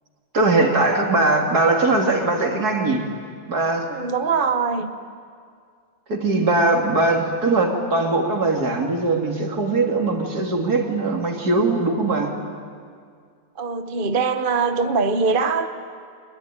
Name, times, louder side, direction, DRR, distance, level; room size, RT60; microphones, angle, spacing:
voice 1, 0.3-3.0 3.5-3.9 6.1-12.3, right 2 dB, 60° right, 1 dB, 3.3 m, -20 dB
voice 2, 3.8-4.9 13.6-15.8, right 4 dB, 35° right, 8 dB, 1.0 m, -22 dB
25.0 x 21.5 x 10.0 m, 2.1 s
omnidirectional pair, 1.9 m